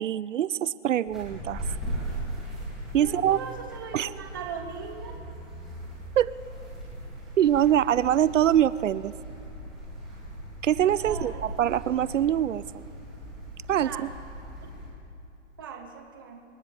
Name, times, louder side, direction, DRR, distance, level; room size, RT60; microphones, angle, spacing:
voice 1, 0.0-1.8 2.9-3.4 3.9-4.1 6.2-6.3 7.4-9.1 10.6-12.9 13.7-14.1, right 11 dB, 85° right, 18 dB, 0.6 m, -24 dB
sound 1, 1.1-14.9, right 1 dB, ahead, 2.6 m, -39 dB
voice 2, 3.0-5.2 11.0-11.5 13.8-14.1 15.6-16.4, right 6 dB, 15° right, 3 dB, 0.9 m, -39 dB
27.0 x 14.0 x 3.5 m, 2.8 s
hypercardioid pair, 180°, 37 cm